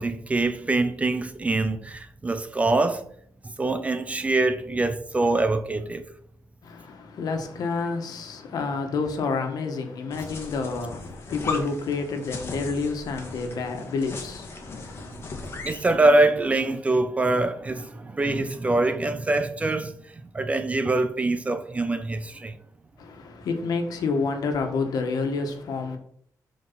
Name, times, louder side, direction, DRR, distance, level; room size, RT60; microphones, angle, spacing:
voice 1, 0.0-3.1 3.6-6.0 15.0-15.1 15.6-19.9 20.3-22.6, right 2 dB, 20° right, 0.7 m, -24 dB
voice 2, 6.6-15.3 23.0-26.0, left 4 dB, 70° left, 1.6 m, -29 dB
sound 1, 10.1-15.9, left 3 dB, 35° left, 1.8 m, -37 dB
13.0 x 4.7 x 4.1 m
cardioid pair, 145°, 7 cm